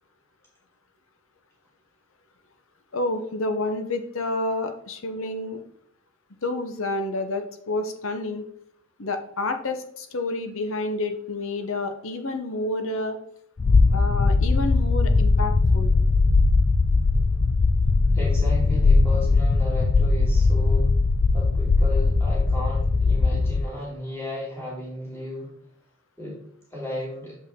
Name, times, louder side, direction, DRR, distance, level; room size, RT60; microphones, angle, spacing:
voice 1, 2.9-5.6 6.4-8.4 9.0-13.2 13.9-15.9, left 2 dB, 60° left, 7 dB, 0.9 m, -29 dB
sound 1, 13.6-23.6, left 3 dB, 30° left, 0.3 m, -20 dB
voice 2, 18.1-20.9 21.3-25.5 26.2-26.4 26.7-27.4, left 1 dB, 10° left, -6 dB, 2.6 m, -34 dB
7.0 x 5.3 x 3.6 m, 0.65 s
head